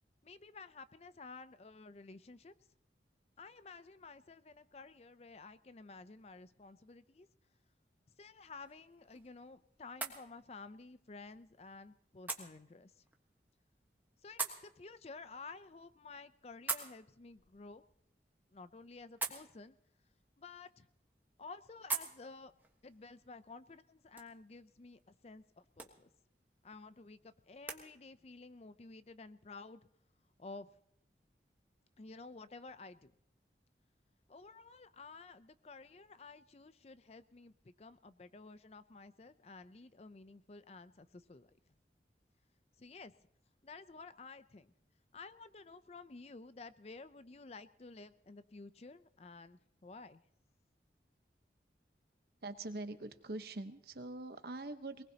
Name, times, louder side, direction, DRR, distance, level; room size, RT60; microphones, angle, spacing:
voice 1, 0.2-2.5 3.4-7.3 8.2-13.0 14.2-17.8 18.5-19.8 20.4-20.9 21.4-22.5 22.8-26.1 26.6-29.8 30.4-30.7 32.0-33.1 34.3-41.5 42.8-43.1 43.6-44.7 45.1-50.2, left 3 dB, 35° left, 13 dB, 0.5 m, -52 dB
sound 1, 8.3-27.8, right 4 dB, 10° right, 1.3 m, -48 dB
voice 2, 52.4-55.0, right 2 dB, 60° right, 9 dB, 1.0 m, -43 dB
23.0 x 19.0 x 2.9 m, 0.73 s
head